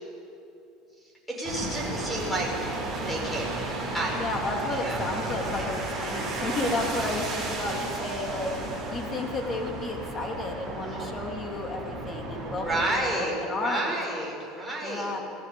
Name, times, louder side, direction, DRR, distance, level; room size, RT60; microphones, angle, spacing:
voice 1, 1.3-2.5 2.9-3.6 3.9-4.2 4.8-5.0 12.4-15.2, right 1 dB, 5° left, -1 dB, 6.0 m, -30 dB
sound 1, 1.4-12.9, right 2 dB, 15° right, 7.6 m, -33 dB
voice 2, 4.1-14.0 14.8-15.2, left 2 dB, 25° left, 1 dB, 3.1 m, -32 dB
26.0 x 17.0 x 7.1 m, 2.7 s
cardioid pair, 150°, 0 cm